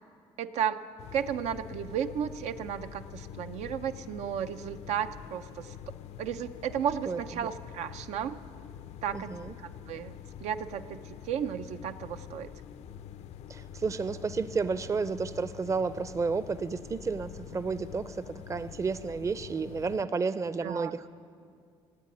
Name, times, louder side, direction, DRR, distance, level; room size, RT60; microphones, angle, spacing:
voice 1, 0.4-0.8 1.1-5.7 6.2-8.4 9.0-9.3 9.6-10.1 10.4-12.5 20.6-21.0, right 8 dB, 85° right, 9 dB, 0.5 m, -33 dB
sound 1, 1.0-20.0, left 9 dB, 75° left, 0.5 m, -46 dB
voice 2, 7.1-7.5 9.1-9.5 13.5-21.0, right 4 dB, 30° right, 14 dB, 0.5 m, -32 dB
16.5 x 8.4 x 9.7 m, 2.2 s
cardioid pair, 105°, 11 cm